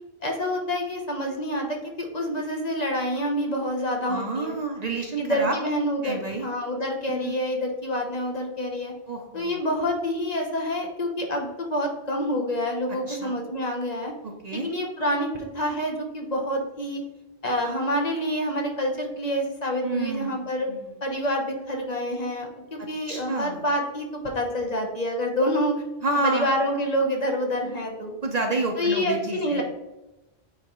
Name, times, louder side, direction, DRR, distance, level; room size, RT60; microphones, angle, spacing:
voice 1, 0.2-4.5 5.2-8.9 9.3-14.1 14.5-17.0 17.4-20.7 21.0-25.8 26.2-28.1 28.8-29.6, equal, 40° left, 1 dB, 0.9 m, -27 dB
voice 2, 4.0-5.5 6.0-6.5 7.1-7.4 9.1-9.6 13.1-13.4 14.4-14.7 19.8-20.9 23.1-23.6 26.0-26.5 28.2-29.6, right 3 dB, 45° right, 2 dB, 0.7 m, -29 dB
8.9 x 3.7 x 3.0 m, 1.0 s
omnidirectional pair, 1.1 m